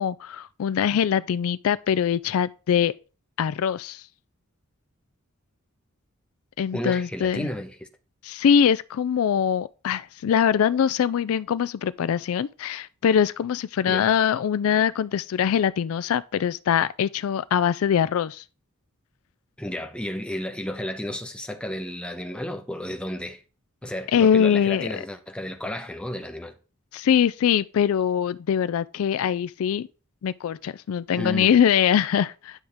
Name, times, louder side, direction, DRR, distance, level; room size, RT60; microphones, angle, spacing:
voice 1, 0.0-2.9 3.4-4.0 6.6-7.5 8.2-18.4 24.1-24.9 26.9-29.9 30.2-32.6, left 8 dB, 70° left, 0.3 m, -23 dB
voice 2, 6.7-7.8 13.9-14.1 19.6-23.4 23.8-26.5 31.1-31.5, left 1 dB, 5° left, 0.9 m, -32 dB
10.0 x 6.4 x 3.5 m
head